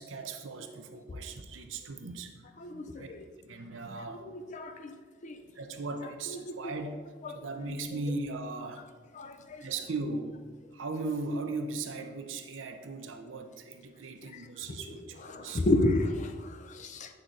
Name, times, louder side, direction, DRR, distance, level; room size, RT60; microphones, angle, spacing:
voice 1, 0.0-2.3 2.7-3.1 3.4-4.4 5.5-7.0 7.3-8.9 9.6-10.4 10.7-15.6, right 3 dB, 80° right, 7 dB, 0.6 m, -38 dB
voice 2, 2.6-3.2 4.3-4.9 5.2-5.4 6.5-6.6 7.7-7.8 9.2-9.6 15.3-17.1, left 2 dB, 40° left, 7 dB, 0.5 m, -31 dB
7.9 x 4.1 x 3.8 m, 1.5 s
head